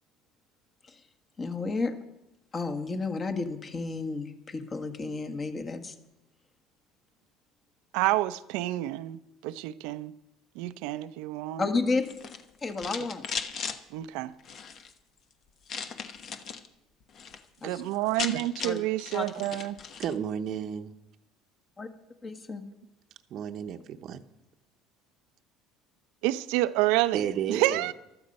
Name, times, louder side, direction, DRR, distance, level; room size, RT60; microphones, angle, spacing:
voice 1, 1.4-1.9 2.5-5.9 11.6-12.1 12.6-13.2 17.6-17.8 18.6-18.8 19.1-19.3 21.8-21.9 22.2-22.6, left 3 dB, 30° left, 1.6 m, -31 dB
voice 2, 7.9-10.1 10.5-11.6 13.9-14.3 17.6-19.8 26.2-27.9, right 16 dB, 80° right, 0.6 m, -28 dB
sound 1, 12.0-13.8 14.4-14.9 15.7-16.7 17.0-17.4 17.7-17.8 17.9-20.2, left 6 dB, 50° left, 1.1 m, -37 dB
voice 3, 20.0-20.9 23.3-24.2 27.1-27.9, right 8 dB, 55° right, 0.9 m, -32 dB
15.0 x 12.5 x 5.4 m
supercardioid pair, 100°, 0 cm